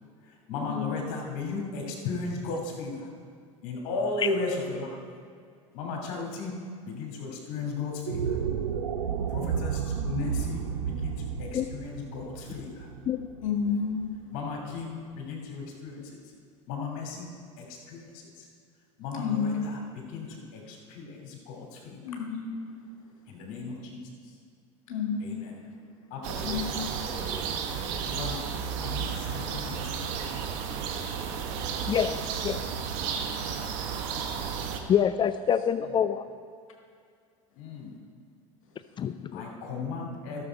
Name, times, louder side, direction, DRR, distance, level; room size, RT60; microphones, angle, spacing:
voice 1, 0.2-3.1 3.6-5.0 5.7-6.5 6.8-8.4 9.3-12.9 14.3-16.2 16.7-17.3 17.6-18.5 19.0-22.2 23.3-24.4 25.2-25.7 26.1-28.5 28.8-30.4 35.9-36.0 37.6-38.0 39.3-40.4, left 3 dB, 60° left, 0 dB, 2.7 m, -36 dB
sound 1, 7.9-14.3, right 7 dB, 85° right, 0.6 m, -32 dB
voice 2, 13.4-14.1 19.2-19.7 22.0-22.6 24.9-25.4 26.4-26.8, left 6 dB, 80° left, 1 dB, 1.6 m, -30 dB
sound 2, 26.2-34.8, right 7 dB, 65° right, 1.1 m, -33 dB
voice 3, 34.9-36.2 39.0-39.4, left 8 dB, 30° left, 12 dB, 0.4 m, -26 dB
13.5 x 7.0 x 4.6 m, 2.2 s
hypercardioid pair, 80°, 17 cm